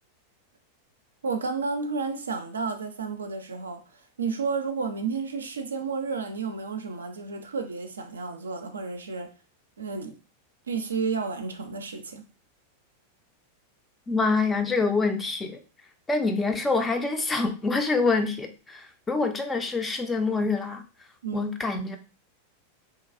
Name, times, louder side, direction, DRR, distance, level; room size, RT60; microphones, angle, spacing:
voice 1, 1.2-9.3 9.8-10.2 10.7-12.3 21.2-21.5, right 4 dB, 70° right, 0.4 m, -31 dB
voice 2, 14.1-15.6 16.1-20.8 21.3-22.0, left 3 dB, 15° left, 0.4 m, -26 dB
2.9 x 2.2 x 2.4 m
figure-of-eight pair, 90°, 0 cm